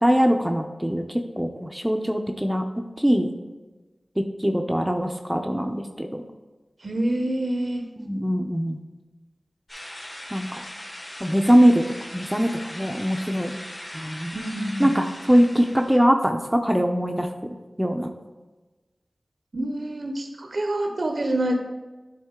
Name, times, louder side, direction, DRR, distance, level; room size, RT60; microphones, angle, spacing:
voice 1, 0.0-2.6 3.0-3.3 4.2-6.2 8.0-8.8 10.3-10.6 11.2-11.8 12.1-13.6 13.9-14.4 14.8-17.3 17.8-18.1, equal, 10° right, 4 dB, 0.5 m, -22 dB
voice 2, 6.8-7.8 14.3-15.0 19.5-21.5, right 1 dB, 60° right, 4 dB, 0.6 m, -27 dB
sound 1, 9.7-16.0, left 1 dB, 40° left, 1.9 m, -39 dB
9.3 x 3.7 x 3.6 m, 1.2 s
wide cardioid pair, 50°, 0 cm